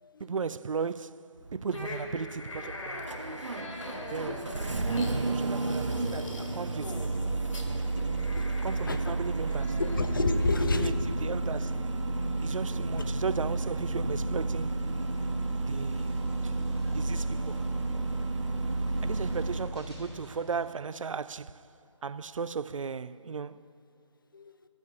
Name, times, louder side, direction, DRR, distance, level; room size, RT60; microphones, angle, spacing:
voice 1, 0.2-3.1 4.0-4.5 5.1-7.2 8.6-9.8 10.7-11.9 12.4-14.9 15.7-16.2 16.4-16.5 16.9-17.6 19.0-21.6 22.0-23.7, right 5 dB, 85° right, 0.4 m, -36 dB
Engine starting, 1.4-19.8, right 2 dB, 70° right, 1.1 m, -31 dB
sound 1, 1.7-10.9, left 1 dB, 75° left, 2.6 m, -43 dB
voice 2, 7.9-8.4 8.9-9.2 9.8-10.9 17.1-17.2 24.3-24.5, left 3 dB, 40° left, 0.6 m, -30 dB
sound 2, 14.7-20.7, left 1 dB, ahead, 1.8 m, -54 dB
13.0 x 6.4 x 9.6 m
figure-of-eight pair, 170°, 16 cm